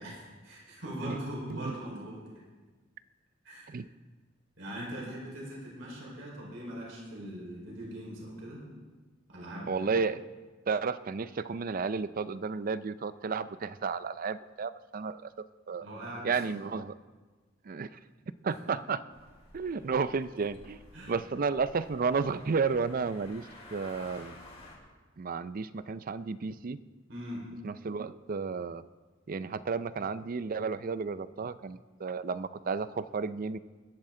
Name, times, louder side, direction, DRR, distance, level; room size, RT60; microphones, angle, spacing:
voice 1, 0.0-2.2 3.4-3.7 4.6-8.6 9.3-9.9 15.8-16.6 18.4-18.7 20.9-21.1 27.1-27.4, equal, 75° right, -3 dB, 4.7 m, -41 dB
voice 2, 9.7-10.2 10.7-15.3 15.7-15.9 16.2-16.9 17.6-18.0 18.4-19.0 19.5-20.8 21.1-24.4 25.2-26.8 27.6-28.8 29.3-33.6, right 5 dB, 45° right, 15 dB, 0.5 m, -32 dB
sound 1, 19.1-24.8, left 2 dB, 35° left, 3.9 m, -52 dB
21.0 x 12.0 x 3.8 m, 1.3 s
head